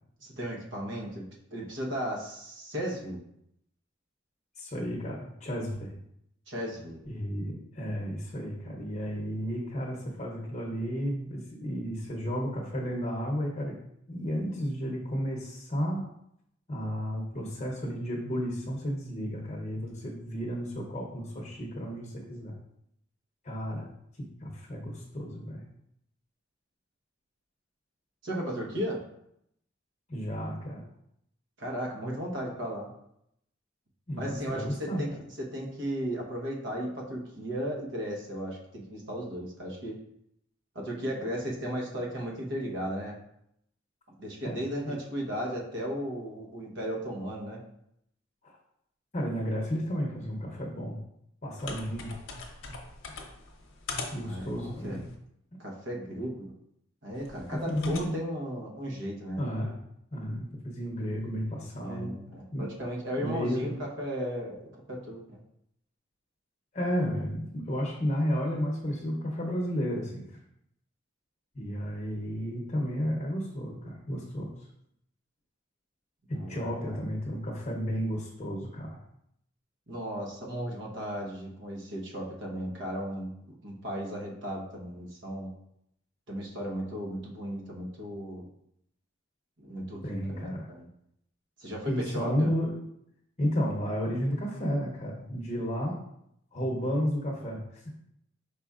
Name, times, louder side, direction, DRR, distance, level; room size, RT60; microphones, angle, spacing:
voice 1, 0.2-1.2 1.5-3.2 6.5-7.0 28.2-29.0 31.6-32.9 34.1-35.1 35.4-40.0 40.7-43.2 44.2-47.6 54.2-55.0 55.6-56.5 57.0-59.4 61.8-64.6 64.9-65.4 76.3-77.0 79.9-85.5 86.3-88.4 89.6-90.9 91.6-92.5, equal, 65° right, -2 dB, 1.1 m, -35 dB
voice 2, 4.6-5.9 7.1-13.8 14.1-16.0 16.7-22.6 23.4-23.9 24.2-25.7 30.1-30.8 34.1-35.0 44.4-44.9 48.4-48.5 49.1-51.0 51.4-52.1 54.1-55.0 57.7-58.2 59.4-59.8 60.1-62.2 62.5-62.7 63.2-63.7 66.7-70.3 71.5-74.5 76.3-79.0 90.0-90.7 91.8-92.7 93.4-96.0 96.5-97.9, equal, 35° left, -2 dB, 0.8 m, -32 dB
sound 1, 51.6-55.2 57.2-58.1, left 3 dB, 80° left, 0.8 m, -42 dB
5.0 x 4.2 x 2.4 m, 0.76 s
head